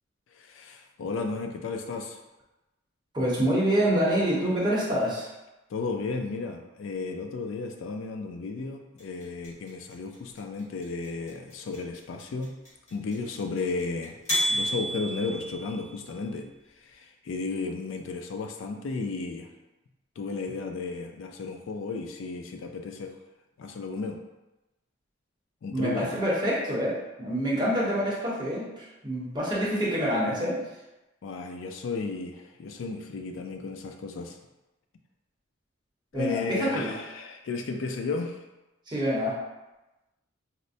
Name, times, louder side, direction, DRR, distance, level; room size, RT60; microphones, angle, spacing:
voice 1, 0.3-2.2 5.7-12.5 12.9-14.2 14.5-16.5 16.8-19.5 20.2-23.2 23.6-24.2 25.6-26.1 31.2-34.4 36.1-38.5, left 4 dB, 70° left, 4 dB, 0.3 m, -34 dB
voice 2, 3.1-5.3 25.7-30.6 36.1-36.9 38.9-39.4, equal, 20° right, -6 dB, 0.9 m, -26 dB
sound 1, 9.0-16.0, equal, 35° left, 1.4 m, -31 dB
4.1 x 2.1 x 2.6 m, 1.0 s
head